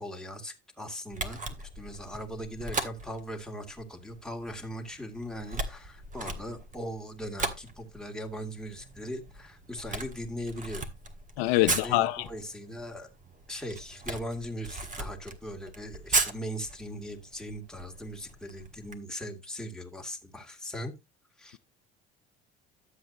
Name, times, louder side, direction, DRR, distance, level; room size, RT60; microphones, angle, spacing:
voice 1, 0.0-1.4 1.8-10.9 11.6-13.1 13.5-20.9 21.4-21.6, equal, ahead, 2.2 m, -39 dB
Camera, 1.1-18.9, right 3 dB, 25° right, 1.7 m, -37 dB
voice 2, 11.4-12.3, left 17 dB, 70° left, 0.7 m, -25 dB
11.5 x 7.8 x 2.8 m
hypercardioid pair, 70°, 32 cm